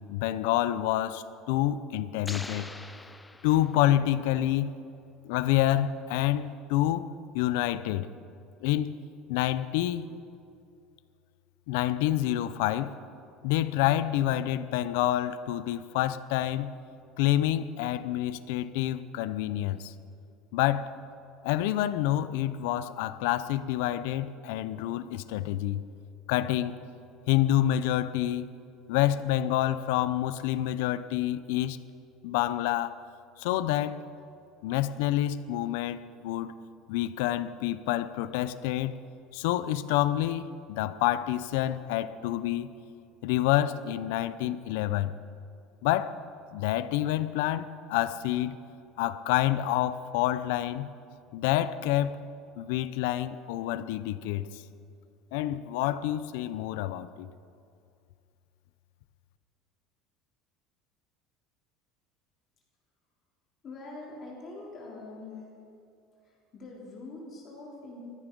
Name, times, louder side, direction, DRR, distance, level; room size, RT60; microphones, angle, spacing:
voice 1, 0.1-2.7 3.4-4.7 5.2-7.1 7.3-8.1 8.6-9.0 9.3-10.1 11.7-12.9 13.4-16.7 17.2-19.9 20.5-20.9 21.4-25.8 26.3-26.8 27.3-28.5 28.9-31.8 32.2-33.0 33.4-34.0 34.6-36.5 36.9-39.0 39.3-42.7 43.2-45.1 45.8-46.2 46.5-48.6 49.0-50.9 51.3-52.2 52.6-54.6 55.3-57.3, left 13 dB, 75° left, 0.6 m, -28 dB
sound 1, 2.2-4.1, left 2 dB, 5° left, 0.5 m, -43 dB
voice 2, 63.6-65.6 66.2-68.0, left 2 dB, 30° left, 3.4 m, -44 dB
15.5 x 13.5 x 5.3 m
cardioid pair, 170°, 0 cm